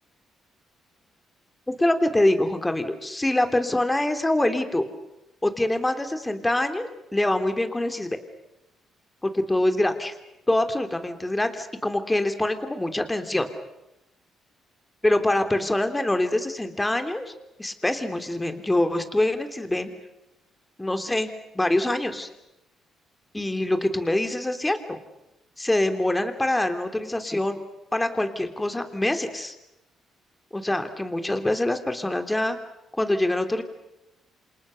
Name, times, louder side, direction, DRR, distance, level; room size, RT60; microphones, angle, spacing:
voice 1, 1.7-4.8 5.4-8.2 9.2-10.1 10.5-13.5 15.0-17.3 17.6-19.9 20.8-21.3 21.6-22.3 23.3-24.8 25.6-27.6 27.9-29.6 30.5-32.6 33.0-33.6, left 1 dB, 10° left, 7 dB, 3.4 m, -24 dB
29.0 x 27.0 x 6.7 m, 0.91 s
cardioid pair, 90°, 0 cm